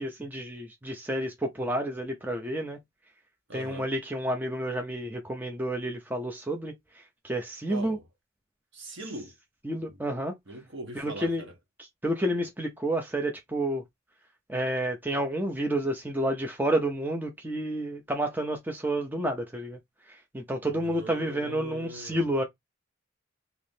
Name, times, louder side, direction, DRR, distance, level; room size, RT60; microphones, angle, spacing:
voice 1, 0.0-2.8 3.5-6.7 7.2-8.0 9.6-10.3 11.0-11.4 11.8-13.8 14.5-19.8 20.3-22.4, right 1 dB, 10° right, 0.5 m, -30 dB
voice 2, 3.5-3.9 7.7-8.0 8.7-9.3 9.8-9.9 10.5-11.5 20.7-22.2, right 1 dB, 55° right, 1.2 m, -41 dB
3.4 x 3.0 x 2.7 m
head